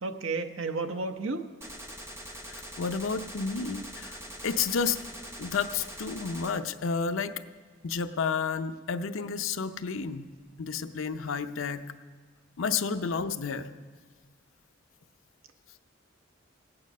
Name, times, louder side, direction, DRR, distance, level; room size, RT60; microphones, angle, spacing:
voice 1, 0.0-1.5, right 3 dB, 85° right, 7 dB, 0.8 m, -32 dB
Gunshot gunfire, 1.6-6.6, equal, 15° right, 0.7 m, -43 dB
voice 2, 2.5-4.2 4.4-5.0 5.4-7.4 7.8-10.3 10.6-11.8 12.6-13.7, left 5 dB, 80° left, 9 dB, 0.6 m, -31 dB
18.0 x 8.8 x 5.3 m, 1.5 s
head